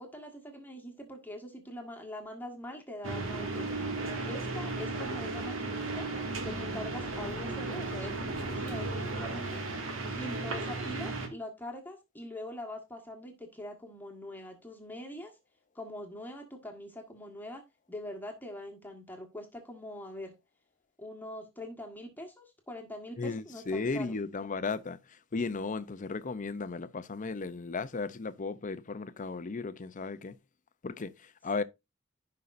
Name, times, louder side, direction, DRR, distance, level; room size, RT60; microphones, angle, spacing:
voice 1, 0.0-3.8 4.3-6.1 6.4-9.6 10.2-15.3 15.7-17.6 17.9-20.3 21.0-24.2, left 1 dB, 10° left, 1.5 m, -43 dB
sound 1, 3.0-11.3, right 2 dB, 75° right, 2.1 m, -35 dB
voice 2, 23.2-25.0 25.3-30.3 30.8-31.6, left 4 dB, 40° left, 0.6 m, -35 dB
15.5 x 5.3 x 2.6 m
head